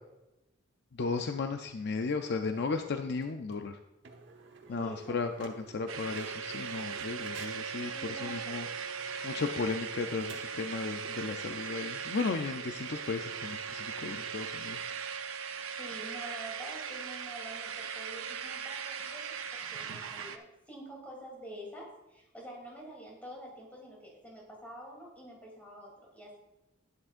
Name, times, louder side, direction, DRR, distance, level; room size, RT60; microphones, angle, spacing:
voice 1, 0.9-3.8 4.7-8.7 9.2-14.8, left 4 dB, 55° left, 6 dB, 0.5 m, -35 dB
sound 1, 2.2-2.8 3.2-3.3 3.5-3.6 4.0-11.2 11.6-11.7 11.9-12.0 12.4-14.5, right 4 dB, 60° right, 1.1 m, -52 dB
voice 2, 4.7-5.6 7.9-8.7 15.8-26.4, right 1 dB, 10° left, -3 dB, 3.0 m, -47 dB
sound 2, 5.9-20.4, right 6 dB, 80° right, 0.7 m, -39 dB
11.0 x 9.5 x 2.5 m, 0.94 s
head